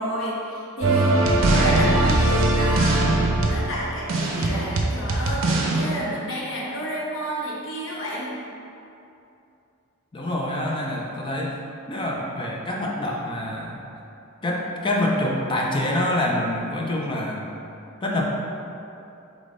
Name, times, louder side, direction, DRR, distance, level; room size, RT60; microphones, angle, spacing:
voice 1, 0.0-3.1 3.5-8.3, equal, 65° left, -5 dB, 0.9 m, -30 dB
sound 1, 0.8-5.9, right 2 dB, 70° right, 0.5 m, -20 dB
voice 2, 10.1-11.6 11.9-13.8 14.4-17.5 18.0-18.2, left 1 dB, 25° left, -1 dB, 0.4 m, -26 dB
3.6 x 3.5 x 3.7 m, 2.7 s
head